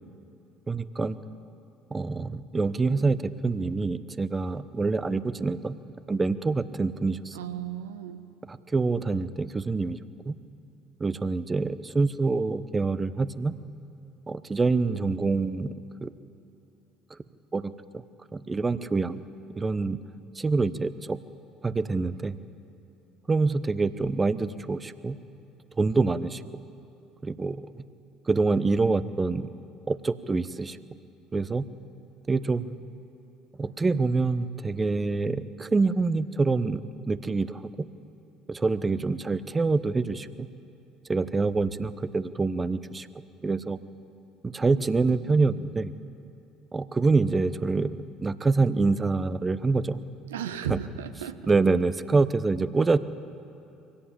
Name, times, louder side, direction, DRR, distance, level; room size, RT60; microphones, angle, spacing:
voice 1, 0.7-1.2 1.9-5.8 6.1-7.4 8.5-10.0 10.3-10.4 11.0-13.5 14.3-16.1 17.5-18.0 18.3-19.2 19.6-20.0 20.3-21.2 21.6-22.4 23.3-25.2 25.8-26.4 27.2-27.8 28.3-29.5 29.9-30.8 31.3-31.6 32.3-32.7 33.6-37.6 38.5-40.5 41.1-43.1 43.4-43.8 44.4-45.9 46.7-50.0 50.7-50.8 51.5-53.0, right 3 dB, 25° right, 13 dB, 1.0 m, -26 dB
voice 2, 7.3-8.2 50.3-51.5, right 9 dB, 80° right, 10 dB, 1.0 m, -35 dB
24.0 x 17.0 x 8.6 m, 2.7 s
hypercardioid pair, 60°, 0 cm